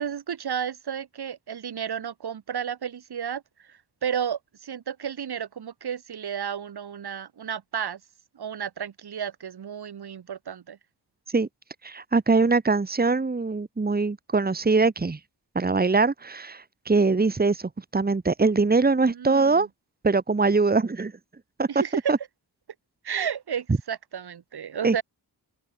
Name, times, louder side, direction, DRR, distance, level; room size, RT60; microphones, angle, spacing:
voice 1, 0.0-3.4 3.7-8.0 8.3-10.8 19.1-19.7 21.7-22.1 23.0-25.0, right 8 dB, 75° right, 2.5 m, -32 dB
voice 2, 11.8-15.2 15.6-19.7 20.0-21.1 21.6-21.7 22.1-22.2 24.8-25.0, right 3 dB, 25° right, 1.9 m, -22 dB
open air
wide cardioid pair, 130°, 40 cm